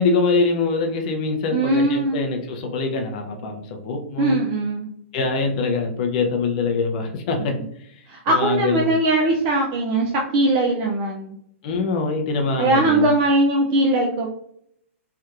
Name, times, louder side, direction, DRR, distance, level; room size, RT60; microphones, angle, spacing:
voice 1, 0.0-4.4 5.1-7.9 8.3-9.0 11.6-13.1, left 4 dB, 35° left, 3 dB, 0.5 m, -24 dB
voice 2, 1.5-2.2 4.2-4.9 7.4-7.6 8.1-11.4 12.6-14.3, right 2 dB, 25° right, -1 dB, 0.3 m, -20 dB
3.3 x 2.8 x 2.4 m, 0.68 s
hypercardioid pair, 170°, 7 cm